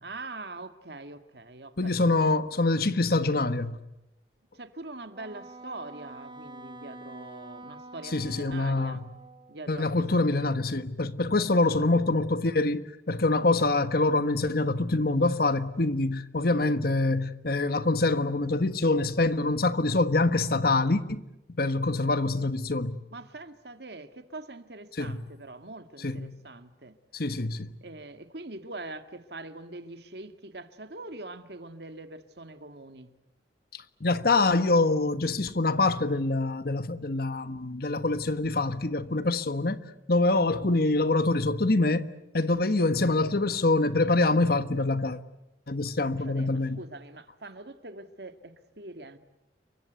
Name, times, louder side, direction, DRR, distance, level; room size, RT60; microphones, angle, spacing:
voice 1, 0.0-2.3 4.5-9.0 9.5-10.0 11.3-11.9 23.1-27.0 27.8-33.1 45.8-49.2, right 2 dB, 65° right, 2.0 m, -43 dB
voice 2, 1.8-3.8 8.0-9.1 9.7-21.2 21.5-23.0 25.0-25.2 26.0-26.4 27.1-27.7 33.7-39.8 40.1-42.1 42.3-45.2 45.7-46.8, left 2 dB, 55° left, 1.4 m, -25 dB
Wind instrument woodwind instrument, 5.1-9.6, right 2 dB, 25° right, 3.0 m, -46 dB
29.5 x 24.0 x 8.1 m
head